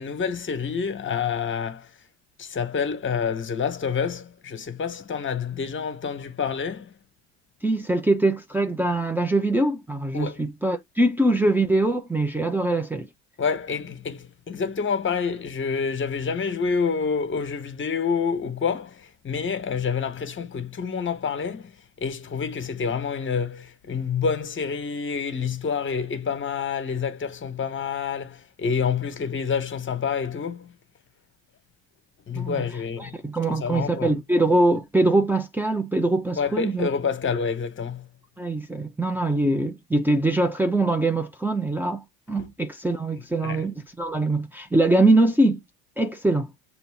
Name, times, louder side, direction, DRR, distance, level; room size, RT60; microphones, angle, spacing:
voice 1, 0.0-1.9 2.4-6.9 10.1-10.4 13.4-30.7 32.3-33.2 33.5-34.1 36.4-38.1 43.4-43.6, left 6 dB, 35° left, 1.9 m, -28 dB
voice 2, 7.6-13.1 32.3-32.6 33.0-36.9 38.4-45.6 46.0-46.5, right 2 dB, 5° right, 1.1 m, -23 dB
6.9 x 3.4 x 4.0 m
supercardioid pair, 90°, 34 cm